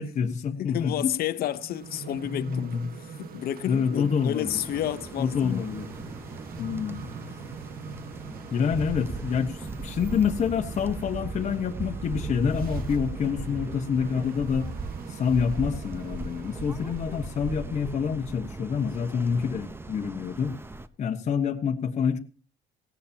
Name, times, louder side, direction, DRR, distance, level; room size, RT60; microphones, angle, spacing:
voice 1, 0.0-1.1 2.3-2.9 3.7-4.6 5.2-5.9 6.6-7.1 8.5-14.7 15.1-20.6 21.0-22.2, left 6 dB, 45° left, 1.3 m, -27 dB
voice 2, 0.6-2.7 3.0-5.7 7.3-7.4, left 12 dB, 65° left, 0.9 m, -31 dB
sound 1, 1.4-18.0, right 5 dB, 60° right, 1.5 m, -43 dB
sound 2, 4.4-20.9, right 3 dB, 15° right, 0.9 m, -38 dB
18.0 x 16.5 x 2.9 m
cardioid pair, 110°, 17 cm